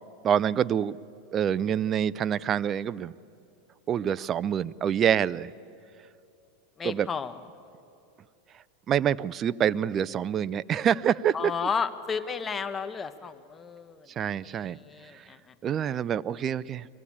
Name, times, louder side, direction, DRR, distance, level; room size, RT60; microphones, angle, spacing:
voice 1, 0.2-0.9 1.3-3.1 3.9-5.5 6.8-7.1 8.9-11.5 14.2-14.8 15.1-15.2 15.6-16.9, right 9 dB, 35° right, 19 dB, 0.4 m, -26 dB
voice 2, 6.8-7.4 11.3-14.1 14.4-15.5, left 6 dB, 20° left, 9 dB, 1.1 m, -33 dB
23.0 x 16.0 x 8.6 m, 2.6 s
hypercardioid pair, 110°, 0 cm